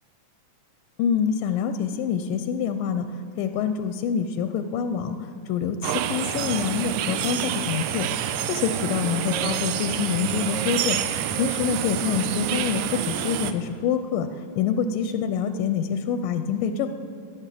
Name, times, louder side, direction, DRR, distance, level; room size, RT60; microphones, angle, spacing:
voice 1, 1.0-3.1 3.4-11.0 11.4-14.3 14.6-16.9, left 7 dB, 90° left, 9 dB, 2.3 m, -26 dB
sound 1, 5.8-13.5, right 10 dB, 85° right, 2.3 m, -28 dB
14.5 x 11.0 x 7.6 m, 2.4 s
omnidirectional pair, 3.8 m